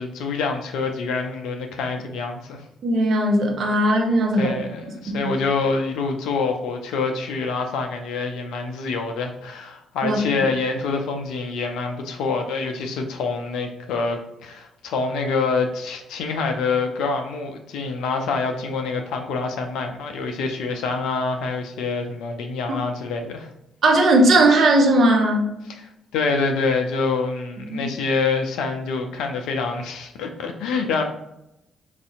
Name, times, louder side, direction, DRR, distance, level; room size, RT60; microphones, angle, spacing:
voice 1, 0.0-2.6 4.4-23.5 25.7-25.8 26.1-31.0, left 4 dB, 65° left, 4 dB, 0.5 m, -26 dB
voice 2, 2.8-4.6 5.1-5.3 10.0-10.2 23.8-25.5 27.7-27.9, right 1 dB, 50° right, 2 dB, 0.7 m, -18 dB
4.8 x 2.6 x 2.3 m, 0.85 s
figure-of-eight pair, 40°, 0 cm